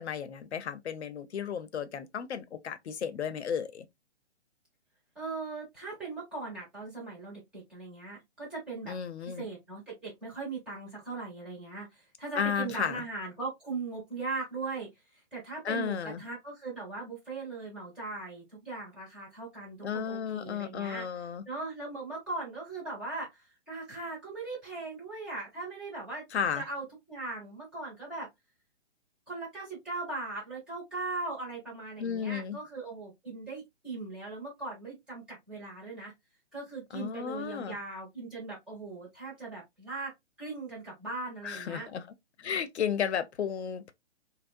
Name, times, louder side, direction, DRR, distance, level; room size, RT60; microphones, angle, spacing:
voice 1, 0.0-3.9 8.8-9.4 12.4-13.0 15.6-16.2 19.8-21.4 26.3-26.7 32.0-32.6 36.9-37.8 41.4-42.1 42.4-43.9, left 7 dB, 70° left, 0.6 m, -33 dB
voice 2, 5.1-8.9 9.4-14.9 15.3-21.0 21.5-26.2 26.6-28.3 29.3-36.1 36.5-40.1 40.4-41.9, right 3 dB, 5° right, 0.5 m, -39 dB
2.8 x 2.0 x 2.4 m
hypercardioid pair, 145°, 35 cm